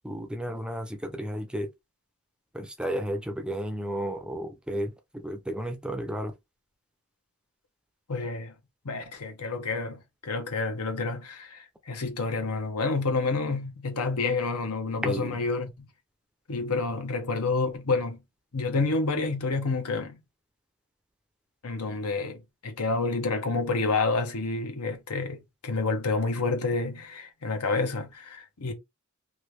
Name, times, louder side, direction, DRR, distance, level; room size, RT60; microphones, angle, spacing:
voice 1, 0.0-1.7 2.5-6.3 15.0-15.4, equal, 5° right, 0.4 m, -33 dB
voice 2, 8.1-8.5 8.8-15.9 16.5-18.2 18.5-20.2 21.6-28.7, left 3 dB, 85° left, 0.9 m, -29 dB
3.0 x 2.6 x 3.1 m
head